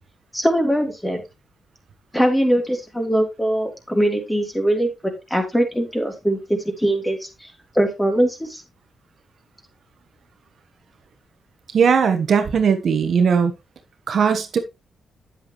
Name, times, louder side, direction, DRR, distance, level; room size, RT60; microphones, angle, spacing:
voice 1, 0.3-1.2 2.1-7.3 7.7-8.6, right 1 dB, 10° left, 3.3 m, -21 dB
voice 2, 11.7-13.5 14.1-14.6, right 6 dB, 65° right, 1.2 m, -18 dB
9.4 x 7.9 x 3.1 m
cardioid pair, 75°, 0 cm